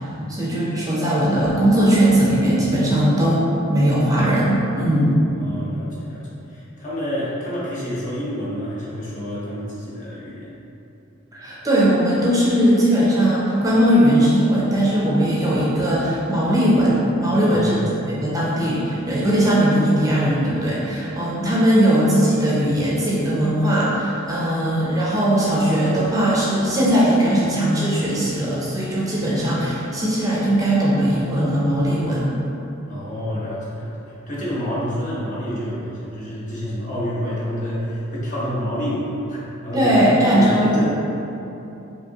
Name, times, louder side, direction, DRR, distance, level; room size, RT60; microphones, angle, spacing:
voice 1, 0.0-5.1 11.3-32.3 39.7-40.8, right 1 dB, 15° right, -7 dB, 0.6 m, -19 dB
voice 2, 5.4-10.5 17.4-17.9 32.9-40.8, equal, 40° left, -8 dB, 1.0 m, -29 dB
5.0 x 2.8 x 2.9 m, 2.9 s
head